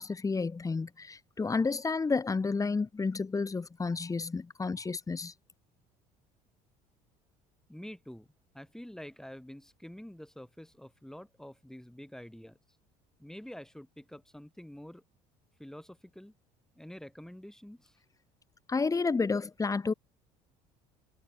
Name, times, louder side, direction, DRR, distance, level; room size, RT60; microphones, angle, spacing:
voice 1, 0.0-5.3 18.7-19.9, left 4 dB, 20° left, 1.6 m, -31 dB
voice 2, 7.7-8.3 8.5-12.6 13.2-15.0 15.6-16.3 16.8-18.0, equal, 5° left, 7.0 m, -47 dB
supercardioid pair, 90°, 16 cm